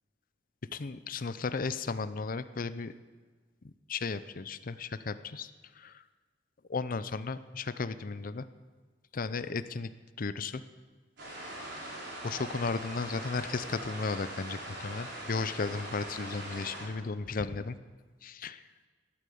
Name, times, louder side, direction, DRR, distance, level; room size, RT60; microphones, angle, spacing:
voice 1, 0.7-2.9 3.9-5.5 5.8-6.0 6.7-8.5 9.1-9.9 10.2-10.6 12.2-17.8 18.2-18.6, left 4 dB, 50° left, 13 dB, 0.6 m, -35 dB
sound 1, 11.2-16.8, right 1 dB, 65° right, 5.1 m, -42 dB
13.0 x 11.5 x 7.0 m, 1.4 s
head